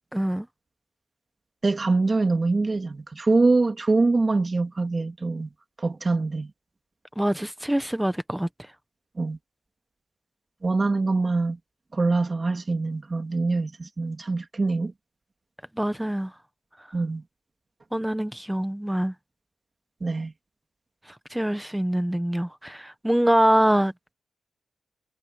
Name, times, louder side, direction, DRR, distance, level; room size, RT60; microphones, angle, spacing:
voice 1, 0.1-0.5 7.2-8.5 15.8-16.3 17.9-19.1 21.3-23.9, right 1 dB, 5° right, 1.2 m, -24 dB
voice 2, 1.6-5.5 5.8-6.5 9.2-9.4 10.6-11.6 11.9-14.9 16.9-17.2 20.0-20.3, right 3 dB, 35° right, 2.9 m, -24 dB
cardioid pair, 80°, 0 cm